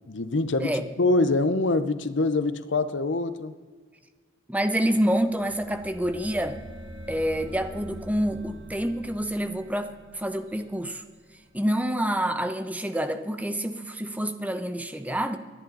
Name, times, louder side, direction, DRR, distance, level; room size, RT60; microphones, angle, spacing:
voice 1, 0.1-3.5, left 2 dB, 70° left, 12 dB, 0.8 m, -25 dB
voice 2, 4.5-6.6 7.1-11.0 11.5-15.4, equal, 10° right, 8 dB, 1.0 m, -27 dB
sound 1, 5.2-11.8, equal, 80° right, 4.1 m, -44 dB
29.5 x 10.5 x 4.0 m, 1.5 s
head